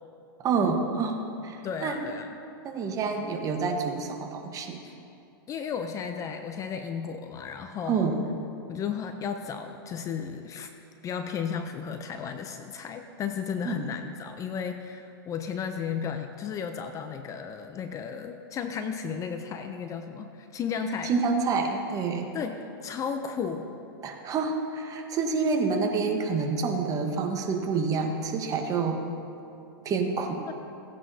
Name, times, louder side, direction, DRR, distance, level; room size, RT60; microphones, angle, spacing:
voice 1, 0.4-1.2 1.4-2.1 2.6-4.8 7.8-8.3 13.6-13.9 21.0-22.3 24.0-29.0 29.8-30.4, right 4 dB, 30° right, 4 dB, 1.2 m, -28 dB
voice 2, 1.6-2.4 4.8-4.9 5.5-8.1 8.7-10.7 11.0-21.1 22.3-23.7 30.4-30.5, left 7 dB, 25° left, 7 dB, 0.6 m, -34 dB
16.5 x 9.5 x 2.8 m, 2.6 s
hypercardioid pair, 120°, 13 cm